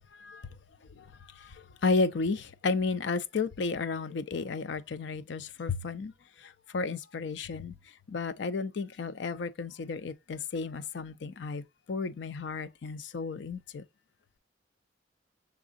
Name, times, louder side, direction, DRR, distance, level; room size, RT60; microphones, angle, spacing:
voice 1, 0.1-0.6 0.9-6.1 6.4-7.8 8.1-11.6 11.9-13.8, left 4 dB, 65° left, 0.5 m, -33 dB
5.9 x 3.6 x 2.5 m
head